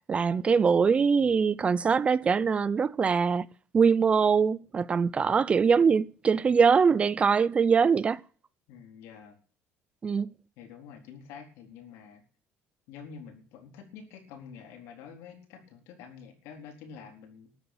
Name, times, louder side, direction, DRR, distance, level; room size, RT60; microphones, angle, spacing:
voice 1, 0.0-3.5 3.7-8.2 10.0-10.3, right 5 dB, 25° right, 0.6 m, -23 dB
voice 2, 8.7-9.4 10.6-12.2 12.9-17.5, left 6 dB, 85° left, 4.2 m, -47 dB
13.5 x 7.9 x 9.2 m
cardioid pair, 130°, 4 cm